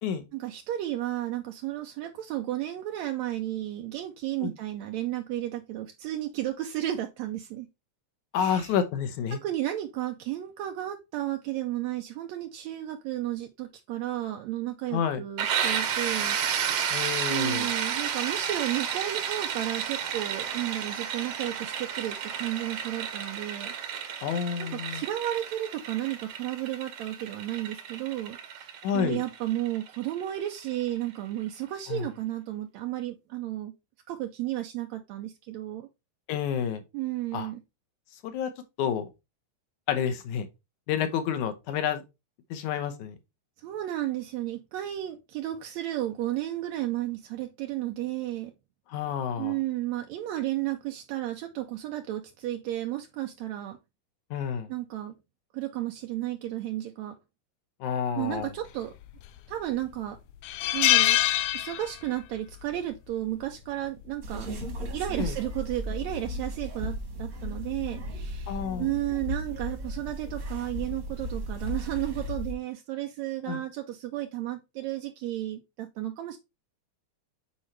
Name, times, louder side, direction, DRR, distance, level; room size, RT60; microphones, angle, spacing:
voice 1, 0.3-7.7 8.3-8.7 9.3-16.4 17.3-23.7 24.6-33.7 34.1-35.9 36.9-37.6 43.6-48.5 49.4-53.8 54.7-55.1 55.5-57.2 58.2-58.9 59.5-60.2 60.7-61.2 61.5-64.5 64.9-76.4, right 14 dB, 80° right, 1.6 m, -33 dB
voice 2, 8.3-9.4 14.9-15.2 16.9-17.7 24.2-25.0 28.8-29.2 31.9-32.1 36.3-36.8 37.3-37.5 38.2-38.5 38.8-39.1 39.9-40.5 40.9-42.0 42.5-43.2 48.9-49.6 54.3-54.7 57.8-58.5 65.2-65.3 68.5-68.9 73.5-73.6, left 8 dB, 70° left, 2.2 m, -29 dB
sound 1, 15.4-31.0, right 8 dB, 65° right, 1.6 m, -32 dB
sound 2, 59.0-59.6 59.9-60.0 60.4-62.3 62.5-62.8 64.0-64.3, left 16 dB, 85° left, 1.6 m, -24 dB
sound 3, 64.2-72.5, equal, 45° right, 1.2 m, -35 dB
8.5 x 4.4 x 3.2 m
omnidirectional pair, 3.9 m